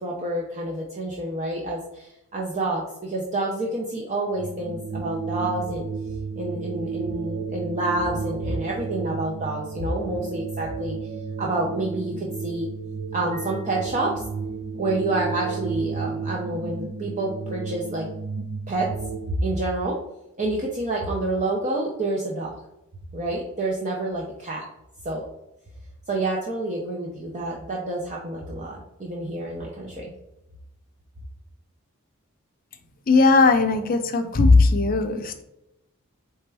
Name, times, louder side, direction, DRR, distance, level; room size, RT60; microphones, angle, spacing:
voice 1, 0.0-5.9 6.4-11.0 11.4-12.7 13.1-14.1 14.8-18.1 18.7-18.9 19.3-20.0 20.4-22.6 23.1-24.6 25.0-25.2 26.1-30.1, right 2 dB, 35° right, -2 dB, 0.6 m, -28 dB
sound 1, 4.3-19.2, right 5 dB, 80° right, 1.1 m, -32 dB
voice 2, 33.1-35.4, left 3 dB, 40° left, 7 dB, 0.5 m, -18 dB
4.2 x 3.4 x 3.4 m, 0.86 s
head